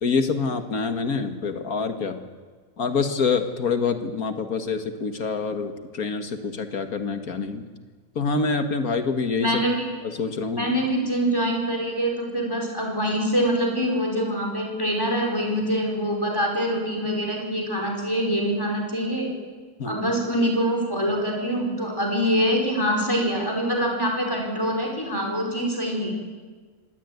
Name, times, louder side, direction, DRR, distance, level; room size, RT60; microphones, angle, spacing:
voice 1, 0.0-2.2 2.8-7.6 8.2-9.5 10.0-10.7 19.8-20.1, left 4 dB, 85° left, 7 dB, 2.2 m, -26 dB
voice 2, 9.4-9.8 10.6-19.3 19.9-26.1, equal, 15° left, 0 dB, 5.1 m, -24 dB
25.0 x 17.5 x 9.6 m, 1.5 s
omnidirectional pair, 1.5 m